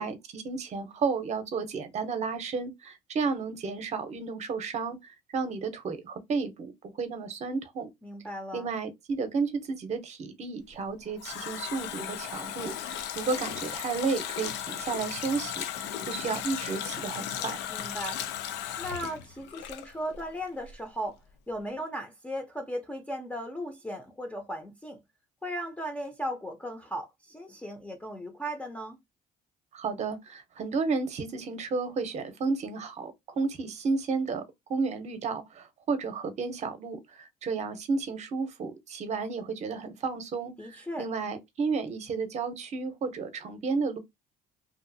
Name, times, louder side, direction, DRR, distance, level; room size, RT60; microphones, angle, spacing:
voice 1, 0.0-7.9 8.5-17.6 29.7-34.4 34.7-44.0, right 4 dB, 40° right, 0.7 m, -32 dB
voice 2, 8.0-8.7 17.7-18.2 18.8-21.2 21.5-25.0 25.4-29.0 40.6-41.1, equal, 10° left, 0.5 m, -37 dB
Water tap faucet, 10.7-20.3 20.6-20.7, left 10 dB, 90° left, 0.5 m, -36 dB
2.7 x 2.5 x 2.6 m
cardioid pair, 110°, 17 cm